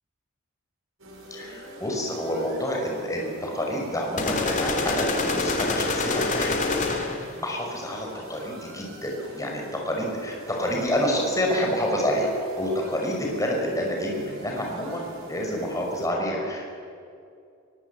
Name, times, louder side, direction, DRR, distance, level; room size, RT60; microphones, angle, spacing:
sound 1, 1.0-16.1, right 1 dB, 70° right, 6.3 m, -44 dB
voice 1, 1.3-7.1 7.4-16.7, equal, 15° left, 0 dB, 5.4 m, -28 dB
sound 2, 4.2-7.3, left 3 dB, 40° left, 3.1 m, -26 dB
24.0 x 22.5 x 8.4 m, 2.4 s
head